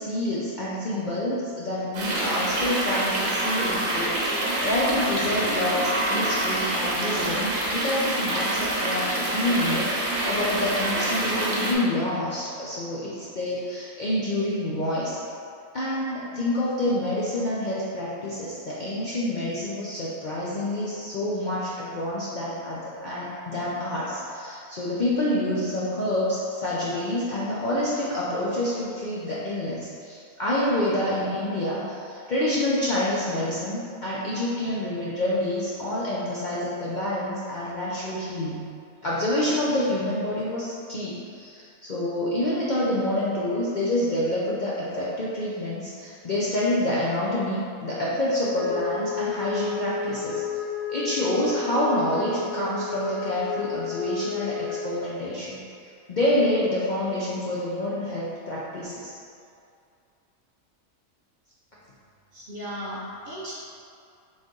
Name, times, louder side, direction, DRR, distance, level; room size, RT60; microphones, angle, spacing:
voice 1, 0.0-15.2 15.7-38.6 39.0-50.4 50.9-55.6 56.1-59.1, left 1 dB, 55° left, -8 dB, 0.5 m, -27 dB
sound 1, 1.9-11.7, right 1 dB, 80° right, 1.2 m, -26 dB
Wind instrument woodwind instrument, 48.5-55.0, left 5 dB, 80° left, 1.3 m, -32 dB
voice 2, 62.3-63.6, equal, 50° right, -6 dB, 0.7 m, -36 dB
4.2 x 3.1 x 3.7 m, 2.4 s
omnidirectional pair, 1.4 m